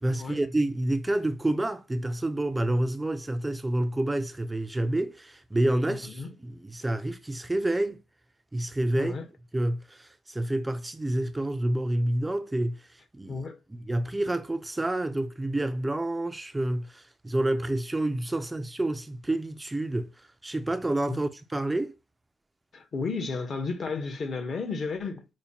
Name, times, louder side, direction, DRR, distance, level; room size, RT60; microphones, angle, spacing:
voice 1, 0.0-8.0 8.5-9.2 9.5-13.4 13.7-21.9, right 1 dB, 15° right, 0.3 m, -28 dB
voice 2, 5.9-6.3 8.9-9.3 13.3-13.6 21.1-21.2 22.7-25.3, left 4 dB, 50° left, 0.8 m, -33 dB
5.0 x 2.1 x 2.8 m
cardioid pair, 90°, 0 cm